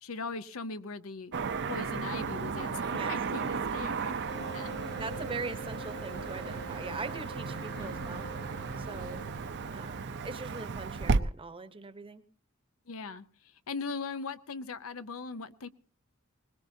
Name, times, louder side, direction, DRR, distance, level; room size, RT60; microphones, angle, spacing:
voice 1, 0.0-1.3 1.7-5.0 7.7-8.0 12.9-15.7, left 4 dB, 75° left, 13 dB, 0.7 m, -40 dB
Car passing by / Traffic noise roadway noise, 1.3-11.2, right 4 dB, 55° right, 0.6 m, -34 dB
sound 1, 3.1-10.7, right 4 dB, 80° right, 1.1 m, -54 dB
sound 2, 4.3-10.7, right 1 dB, 50° left, 0.9 m, -47 dB
voice 2, 5.0-8.3 8.8-9.2 9.7-12.2, right 4 dB, 25° right, 11 dB, 0.9 m, -41 dB
21.5 x 20.0 x 2.8 m, 0.39 s
head